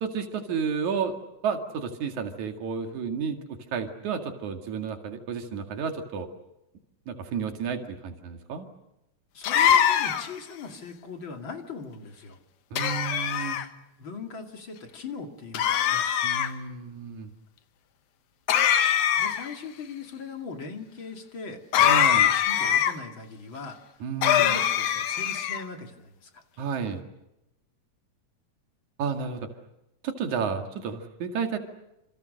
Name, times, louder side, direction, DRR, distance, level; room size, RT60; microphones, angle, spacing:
voice 1, 0.0-1.1 1.4-6.3 7.1-8.7 12.7-13.6 16.2-17.3 21.8-22.3 24.0-24.6 26.6-27.0 29.0-29.4 30.0-31.6, right 6 dB, 80° right, 4 dB, 3.6 m, -31 dB
voice 2, 9.3-12.4 14.0-16.0 19.2-23.8 24.4-26.4 30.3-30.6, left 4 dB, 45° left, 4 dB, 3.0 m, -40 dB
sound 1, 9.4-10.4 12.8-13.6 15.5-16.5 18.5-19.5 21.7-22.9 24.2-25.6, left 9 dB, 90° left, 2.8 m, -22 dB
27.5 x 27.5 x 6.5 m, 0.92 s
omnidirectional pair, 3.3 m